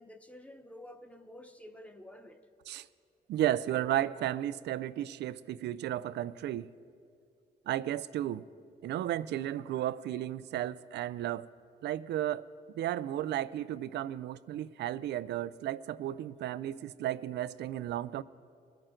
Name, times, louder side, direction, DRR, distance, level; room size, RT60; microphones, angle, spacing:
voice 1, 0.0-2.4, left 1 dB, 5° left, 1.0 m, -50 dB
voice 2, 3.3-6.7 7.7-8.4 8.8-11.5 11.8-12.5 12.7-18.2, right 12 dB, 75° right, 0.4 m, -33 dB
21.5 x 9.0 x 3.8 m
cardioid pair, 70°, 18 cm